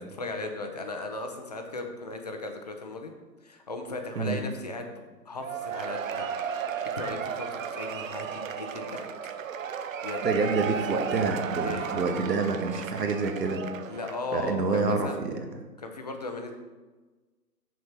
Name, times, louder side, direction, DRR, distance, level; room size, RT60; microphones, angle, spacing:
voice 1, 0.0-3.1 3.4-6.3 6.9-9.1 10.0-10.2 11.6-12.1 13.9-15.2 15.8-16.5, left 2 dB, 25° left, 4 dB, 0.5 m, -37 dB
Cheering / Applause / Crowd, 5.4-14.3, right 7 dB, 55° right, 0.7 m, -34 dB
voice 2, 10.2-13.6 14.3-15.3, right 4 dB, 75° right, 4 dB, 1.5 m, -27 dB
6.5 x 6.4 x 4.4 m, 1.3 s
hypercardioid pair, 140°, 49 cm